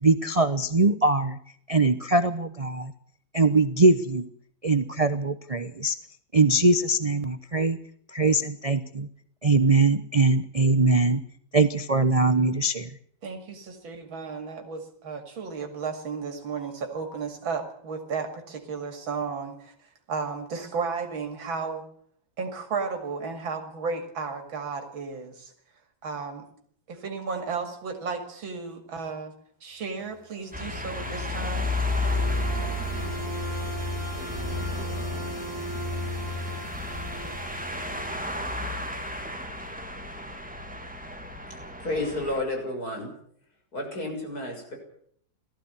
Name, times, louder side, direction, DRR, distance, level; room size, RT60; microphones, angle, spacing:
voice 1, 0.0-1.4 1.7-2.9 3.3-4.3 4.6-5.9 6.3-7.8 8.1-9.1 9.4-11.2 11.5-12.9, right 3 dB, 40° right, 11 dB, 0.5 m, -22 dB
voice 2, 13.2-19.7 20.1-21.8 22.4-25.5 26.0-26.4 26.9-29.3 29.6-31.7, right 5 dB, 90° right, 5 dB, 3.1 m, -33 dB
sound 1, 30.4-38.5, left 1 dB, 20° left, 4.1 m, -35 dB
sound 2, 30.5-42.4, left 2 dB, 5° right, 2.4 m, -33 dB
voice 3, 41.5-43.1 43.7-44.8, left 2 dB, 50° left, 2 dB, 7.1 m, -31 dB
19.5 x 14.5 x 9.8 m, 0.63 s
omnidirectional pair, 2.1 m